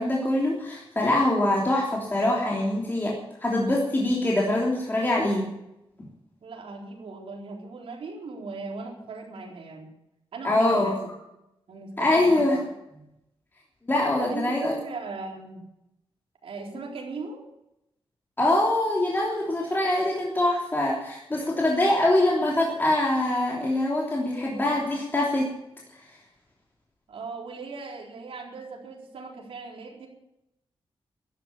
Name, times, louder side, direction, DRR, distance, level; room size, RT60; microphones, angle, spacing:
voice 1, 0.0-5.5 10.4-11.0 12.0-12.6 13.9-14.8 18.4-25.5, left 1 dB, 20° left, -3 dB, 3.2 m, -24 dB
voice 2, 6.4-9.9 10.3-11.1 11.7-12.6 14.2-15.6 16.4-17.4 24.4-24.7 27.1-30.1, right 4 dB, 85° right, -1 dB, 4.1 m, -38 dB
15.5 x 11.0 x 7.3 m, 0.85 s
wide cardioid pair, 140°, 9 cm